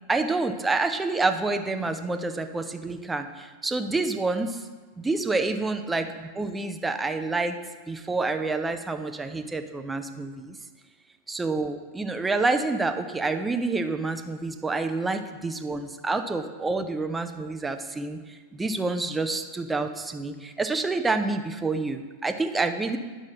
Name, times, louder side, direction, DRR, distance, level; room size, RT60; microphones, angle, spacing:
voice 1, 0.1-4.6 5.0-7.6 7.9-10.6 11.3-23.0, right 3 dB, 10° right, 8 dB, 0.6 m, -28 dB
9.5 x 6.3 x 3.7 m, 1.4 s
figure-of-eight pair, 90°, 0 cm